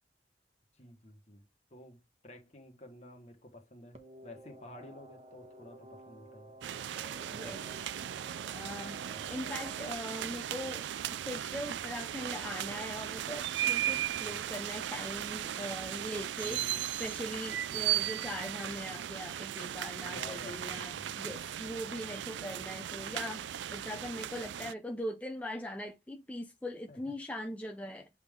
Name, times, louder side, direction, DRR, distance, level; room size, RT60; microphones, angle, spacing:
voice 1, 0.7-6.5 7.3-7.5 9.1-9.2 14.3-14.4 16.4-16.9 17.7-18.0 20.1-21.4 26.9-27.1, left 1 dB, 40° left, 1.5 m, -52 dB
sound 1, 3.9-9.9, right 1 dB, 40° right, 1.3 m, -53 dB
sound 2, 6.6-24.7, right 11 dB, 75° right, 0.3 m, -37 dB
voice 2, 7.3-7.6 8.5-10.9 11.3-28.1, left 1 dB, 10° left, 0.6 m, -41 dB
7.9 x 3.6 x 3.7 m
head